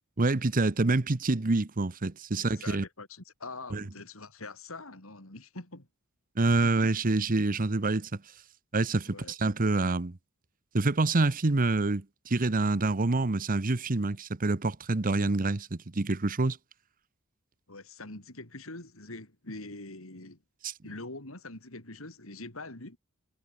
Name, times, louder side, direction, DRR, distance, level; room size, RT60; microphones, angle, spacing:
voice 1, 0.2-2.8 3.7-3.8 6.4-8.1 8.7-10.2 10.7-16.6 20.6-20.7, right 2 dB, 40° right, 0.9 m, -27 dB
voice 2, 2.3-5.9 6.6-6.7 9.1-9.3 17.7-20.4 20.8-23.0, left 2 dB, 75° left, 4.1 m, -44 dB
head